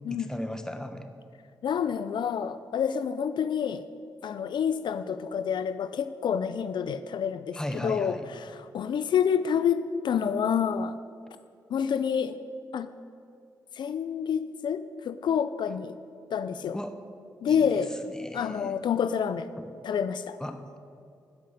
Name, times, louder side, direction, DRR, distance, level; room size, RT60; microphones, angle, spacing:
voice 1, 0.1-1.1 7.5-8.3 16.7-16.9 17.5-18.7 19.6-19.7 20.4-20.6, left 1 dB, 10° left, 8 dB, 1.1 m, -36 dB
voice 2, 1.6-3.9 4.2-11.0 11.7-12.4 12.7-12.9 13.7-16.0 16.3-16.8 17.4-17.9 18.3-19.5 19.8-20.4, left 7 dB, 70° left, 12 dB, 0.4 m, -28 dB
13.0 x 5.3 x 8.1 m, 2.5 s
supercardioid pair, 50°, 8 cm